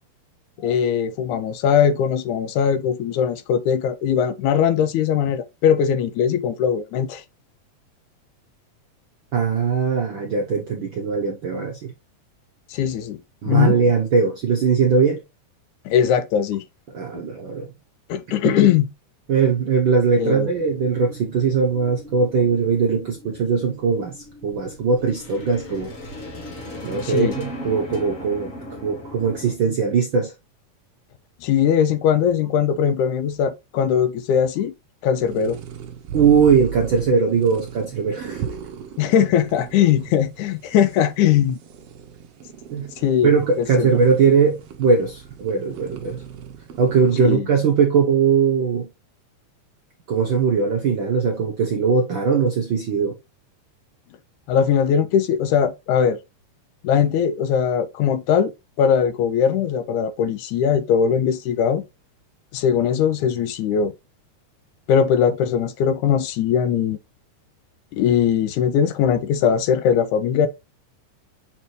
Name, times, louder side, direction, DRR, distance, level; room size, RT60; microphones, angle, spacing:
voice 1, 0.6-7.2 12.7-13.2 13.5-13.8 15.9-16.6 17.1-17.2 18.1-18.9 20.2-20.5 27.0-27.4 31.4-34.7 35.0-35.6 39.0-41.6 43.0-43.3 43.6-43.9 47.2-47.5 54.5-56.2 56.8-58.5 58.8-61.8 62.5-63.9 64.9-67.0 67.9-70.5, left 8 dB, 80° left, 2.0 m, -20 dB
voice 2, 9.3-11.9 13.4-15.2 16.9-17.7 18.4-18.5 19.3-25.9 26.8-28.5 28.8-30.3 36.1-38.4 42.7-42.9 43.2-46.2 46.8-48.9 50.1-53.2, right 5 dB, 85° right, 1.0 m, -20 dB
sound 1, 20.4-29.6, left 1 dB, 30° left, 1.6 m, -38 dB
sound 2, 35.2-47.4, right 9 dB, 65° right, 1.5 m, -38 dB
6.7 x 4.5 x 3.1 m
omnidirectional pair, 3.7 m